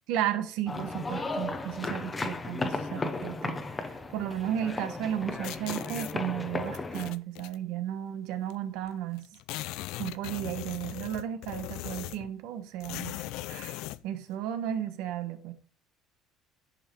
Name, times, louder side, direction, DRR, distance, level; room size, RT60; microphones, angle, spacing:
voice 1, 0.1-9.2 9.7-15.5, right 11 dB, 70° right, 1.1 m, -34 dB
sound 1, 0.7-7.1, left 3 dB, 15° left, 0.7 m, -35 dB
sound 2, 5.4-6.1 6.7-7.6 8.5-8.6 8.8-8.9 9.2-12.3 12.8-14.0, left 17 dB, 70° left, 0.4 m, -39 dB
11.0 x 5.3 x 4.4 m
cardioid pair, 180°, 0 cm